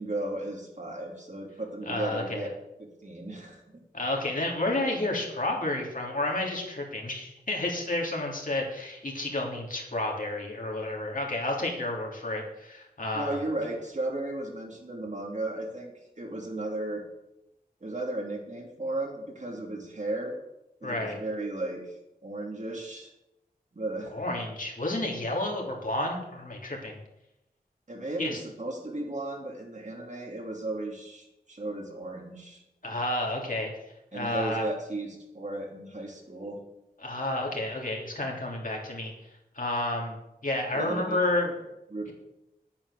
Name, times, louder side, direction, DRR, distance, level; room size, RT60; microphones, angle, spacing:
voice 1, 0.0-2.5 2.8-3.8 13.1-15.9 16.2-17.0 17.8-20.4 20.8-22.0 22.2-23.1 23.7-24.1 27.9-32.6 34.1-36.6 40.7-41.2 41.9-42.1, right 2 dB, 50° right, 0 dB, 3.1 m, -35 dB
voice 2, 1.9-2.5 3.9-13.4 20.8-21.2 24.1-27.0 28.2-28.4 32.8-33.7 34.1-34.7 37.0-39.1 39.5-41.6, left 2 dB, 60° left, -1 dB, 3.2 m, -31 dB
9.4 x 8.8 x 6.8 m, 0.89 s
wide cardioid pair, 55°, 16 cm